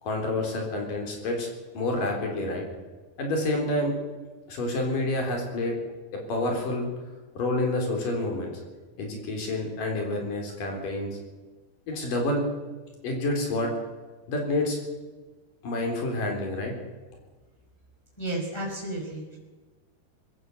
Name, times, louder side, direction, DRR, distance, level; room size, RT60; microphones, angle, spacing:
voice 1, 0.0-1.5 1.7-2.6 3.2-3.9 4.5-5.8 6.1-6.9 7.4-8.6 9.0-11.2 11.9-12.4 13.0-13.7 14.3-14.8 15.6-16.7, left 2 dB, 60° left, 2 dB, 5.4 m, -28 dB
voice 2, 18.2-19.4, right 1 dB, 5° left, -2 dB, 5.1 m, -32 dB
20.5 x 16.0 x 8.0 m, 1.3 s
omnidirectional pair, 4.4 m